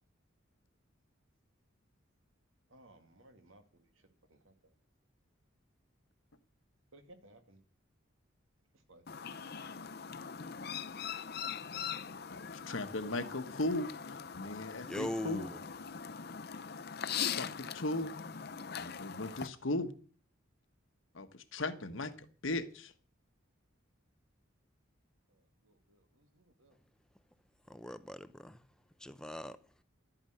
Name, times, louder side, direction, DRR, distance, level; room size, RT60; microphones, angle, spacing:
voice 1, 2.7-4.7 6.9-7.6 8.9-9.0 25.3-26.8 27.6-28.0, right 1 dB, 85° right, 2.2 m, -62 dB
Chirp tweet, 9.1-19.5, left 7 dB, 50° left, 0.7 m, -41 dB
voice 2, 12.3-15.5 17.4-18.1 18.8-19.9 21.1-22.9, left 2 dB, 75° left, 1.3 m, -37 dB
voice 3, 14.8-15.6 27.7-28.7 29.0-29.6, left 1 dB, 5° left, 0.6 m, -40 dB
12.0 x 8.9 x 7.8 m
head